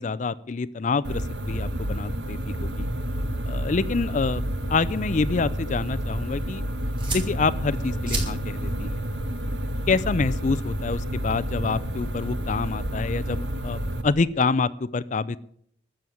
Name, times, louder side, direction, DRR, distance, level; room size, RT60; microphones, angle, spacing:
voice 1, 0.0-2.9 3.5-4.4 4.7-6.6 7.1-9.0 9.9-15.4, left 4 dB, 40° left, 18 dB, 0.4 m, -27 dB
sound 1, 1.0-14.0, equal, 70° right, 1.3 m, -29 dB
sound 2, 6.1-14.2, right 1 dB, 30° right, 4.2 m, -40 dB
12.5 x 7.8 x 9.2 m, 0.66 s
head